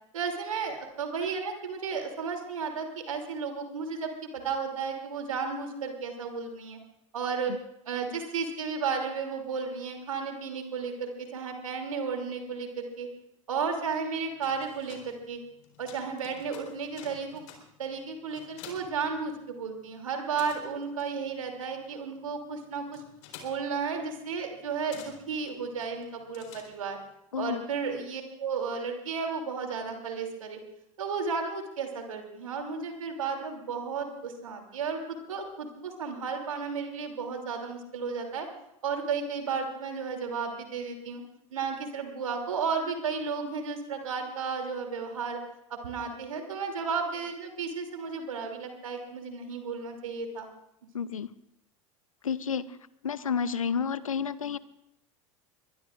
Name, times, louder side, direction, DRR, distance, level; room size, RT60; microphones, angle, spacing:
voice 1, 0.1-6.8 7.1-7.6 7.9-13.1 13.5-15.4 15.8-17.4 17.8-23.0 23.4-27.0 27.4-30.6 31.0-38.5 38.8-41.2 41.5-45.4 45.7-50.5, right 5 dB, 80° right, 4 dB, 2.9 m, -33 dB
sound 1, 14.2-19.8 20.0-27.1, left 7 dB, 65° left, 3.9 m, -52 dB
voice 2, 50.9-51.3 52.2-52.8 53.0-54.6, left 6 dB, 85° left, 17 dB, 0.7 m, -30 dB
22.5 x 21.5 x 2.5 m, 0.80 s
hypercardioid pair, 80°, 17 cm